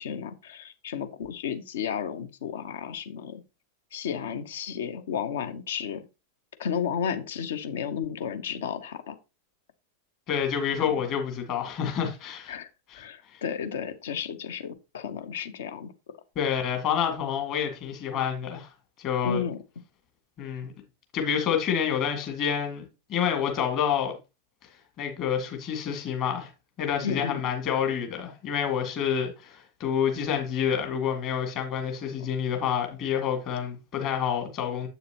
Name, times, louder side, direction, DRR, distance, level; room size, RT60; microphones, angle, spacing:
voice 1, 0.0-3.4 3.9-6.0 6.6-9.2 10.8-10.9 12.5-12.7 12.9-15.9 19.2-19.6 27.0-27.4, left 7 dB, 60° left, 0.8 m, -33 dB
voice 2, 10.3-12.5 12.9-13.0 13.3-13.4 16.4-18.7 19.0-19.4 20.4-20.7 21.1-22.8 23.1-24.1 25.0-26.5 26.8-34.9, left 8 dB, 40° left, 2.1 m, -28 dB
8.0 x 6.7 x 2.9 m
figure-of-eight pair, 90°, 0 cm